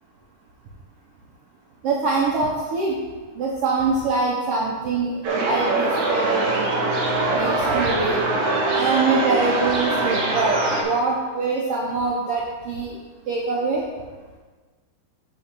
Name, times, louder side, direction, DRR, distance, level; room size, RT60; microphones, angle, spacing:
voice 1, 1.8-2.9 3.4-5.1 5.4-6.7 7.3-8.2 8.7-12.9 13.3-13.8, right 4 dB, 85° right, -3 dB, 1.3 m, -24 dB
sound 1, 5.2-10.8, right 2 dB, 60° right, 2.0 m, -22 dB
7.5 x 4.0 x 6.7 m, 1.3 s
omnidirectional pair, 3.9 m